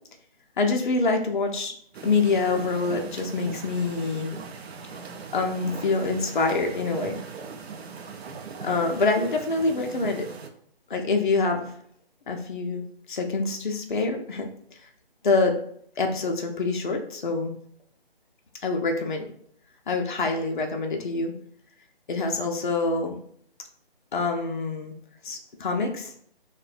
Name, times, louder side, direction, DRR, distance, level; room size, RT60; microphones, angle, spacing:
voice 1, 0.6-1.8 2.0-4.3 5.3-7.2 8.6-10.3 10.9-11.7 12.3-12.8 13.1-14.5 14.8-14.9 15.2-15.6 16.0-17.5 18.6-19.3 19.9-21.3 22.1-23.2 24.1-24.9 25.2-26.1, left 3 dB, 55° left, 3 dB, 0.4 m, -25 dB
sound 1, 1.9-10.5, right 5 dB, 85° right, 0.5 m, -39 dB
2.5 x 2.1 x 2.4 m, 0.64 s
hypercardioid pair, 175°, 30 cm